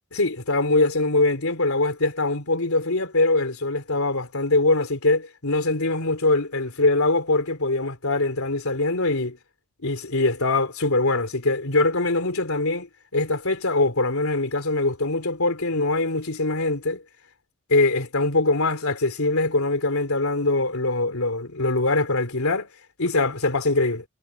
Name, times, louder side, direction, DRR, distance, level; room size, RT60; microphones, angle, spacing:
voice 1, 0.1-9.4 9.8-12.9 13.1-17.0 17.7-22.7 23.0-24.0, left 2 dB, 80° left, 3.4 m, -23 dB
head